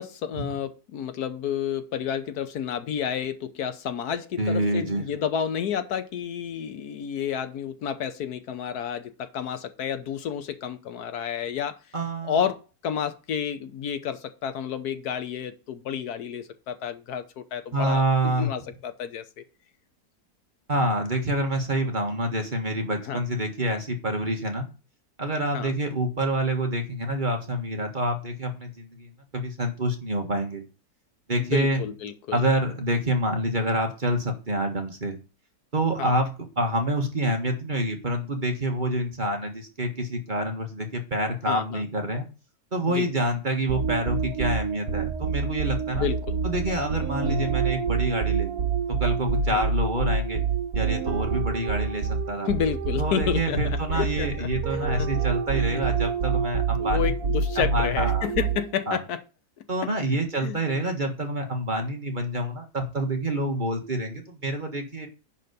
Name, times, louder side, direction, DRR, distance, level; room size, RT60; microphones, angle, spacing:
voice 1, 0.0-11.8 12.3-19.4 23.1-23.2 25.5-25.7 31.4-32.4 36.0-36.1 41.5-41.8 42.9-43.1 45.9-46.4 49.5-49.6 52.5-55.1 55.5-55.8 56.8-59.2 60.4-60.6, left 8 dB, 80° left, 1.4 m, -30 dB
voice 2, 4.4-5.0 11.9-12.4 17.7-18.5 20.7-24.7 25.2-30.6 31.3-31.8 32.3-35.1 35.7-42.3 42.7-46.1 46.4-48.6 48.9-50.4 50.7-52.5 53.0-57.1 57.6-58.3 58.9-59.0 59.7-65.1, right 1 dB, 30° right, 1.6 m, -27 dB
sound 1, 43.7-58.8, right 5 dB, 70° right, 1.6 m, -27 dB
10.5 x 4.2 x 6.7 m
omnidirectional pair, 1.7 m